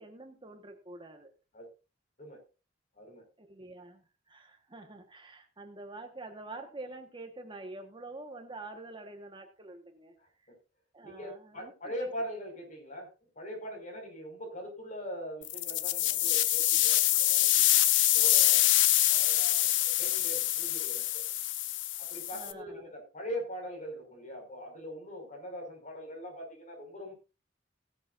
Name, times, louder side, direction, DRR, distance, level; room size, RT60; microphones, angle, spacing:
voice 1, 0.0-1.3 3.4-10.1 10.4-10.5 10.9-12.1 22.3-22.9, right 2 dB, 25° right, 5 dB, 1.4 m, -46 dB
voice 2, 3.0-3.3 11.0-13.1 13.4-17.6 18.0-18.7 19.1-21.3 22.0-27.1, equal, 45° left, 2 dB, 5.4 m, -42 dB
sound 1, 15.4-22.5, left 14 dB, 80° left, 0.8 m, -26 dB
16.5 x 10.5 x 2.6 m, 0.30 s
head